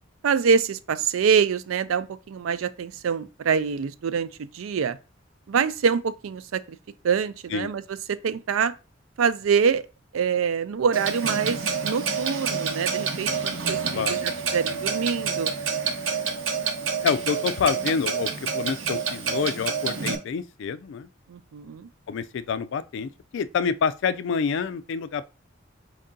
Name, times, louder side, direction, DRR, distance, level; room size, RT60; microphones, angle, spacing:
voice 1, 0.2-5.0 5.5-6.8 7.0-7.8 8.1-8.7 9.2-9.8 10.1-15.5 21.3-21.9, right 6 dB, 90° right, 0.4 m, -25 dB
Clock, 10.9-20.2, right 5 dB, 70° right, 0.8 m, -28 dB
voice 2, 17.0-21.1 22.1-25.2, left 6 dB, 65° left, 0.3 m, -27 dB
4.6 x 2.7 x 3.7 m
head